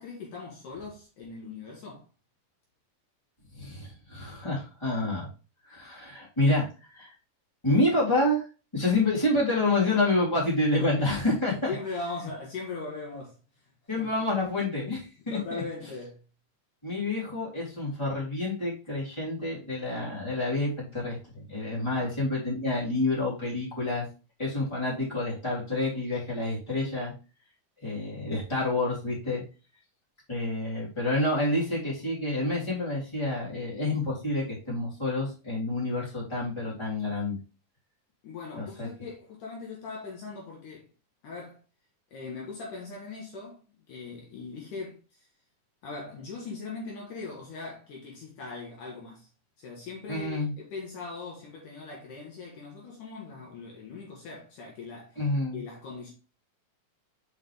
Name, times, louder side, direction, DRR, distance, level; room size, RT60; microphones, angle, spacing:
voice 1, 0.0-2.1 10.7-13.7 13.9-14.1 15.3-16.2 21.8-22.1 38.2-40.9 41.2-41.6 42.1-43.6 43.9-45.3 45.8-49.3 49.6-55.2 55.5-56.1, left 4 dB, 65° left, 2.7 m, -40 dB
voice 2, 3.5-5.3 5.7-7.1 7.6-8.4 8.7-11.7 13.9-15.6 16.8-24.0 24.4-27.1 27.8-29.4 30.3-37.4 38.5-39.1 50.1-50.5 55.2-55.6, left 2 dB, 10° left, 2.7 m, -28 dB
6.5 x 5.5 x 3.5 m
omnidirectional pair, 4.3 m